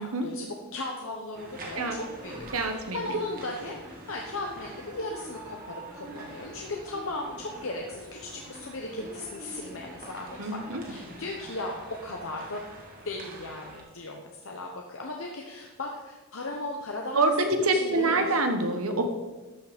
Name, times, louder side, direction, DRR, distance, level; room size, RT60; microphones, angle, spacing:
voice 1, 0.2-10.6 10.8-11.8 12.0-12.6 13.0-17.2 17.5-18.3, left 2 dB, 65° left, 0 dB, 1.0 m, -37 dB
sound 1, 1.3-13.8, right 1 dB, 40° right, 2.0 m, -44 dB
voice 2, 2.5-3.2 10.4-10.8 17.1-19.1, right 2 dB, 80° right, 5 dB, 1.3 m, -26 dB
13.0 x 5.9 x 5.2 m, 1.2 s
head